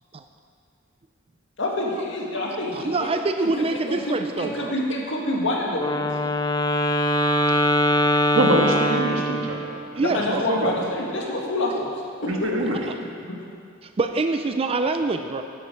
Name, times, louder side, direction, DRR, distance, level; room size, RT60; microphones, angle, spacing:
voice 1, 1.6-3.1 3.4-3.5 3.9-6.1 10.0-11.9 12.2-12.5 13.3-13.4, left 1 dB, 65° left, -2 dB, 1.9 m, -27 dB
voice 2, 2.7-4.7 10.0-10.2 12.7-13.0 13.8-15.4, right 3 dB, 30° right, 7 dB, 0.4 m, -25 dB
Wind instrument woodwind instrument, 5.7-9.8, left 1 dB, 20° left, 0.5 m, -22 dB
voice 3, 8.3-9.7 10.3-10.7 12.2-12.8, right 1 dB, 75° right, 0 dB, 1.5 m, -24 dB
12.5 x 9.4 x 4.5 m, 2.3 s
head